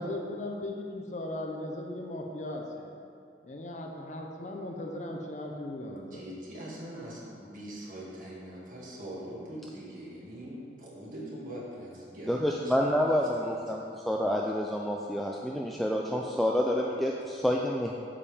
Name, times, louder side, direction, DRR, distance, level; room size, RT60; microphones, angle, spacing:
voice 1, 0.0-3.0 3.4-6.2, left 1 dB, 40° left, 1 dB, 0.7 m, -37 dB
voice 2, 6.0-13.8, right 1 dB, 45° right, -6 dB, 1.9 m, -43 dB
voice 3, 12.3-17.9, equal, ahead, -2 dB, 0.3 m, -28 dB
8.6 x 7.2 x 3.5 m, 2.5 s
head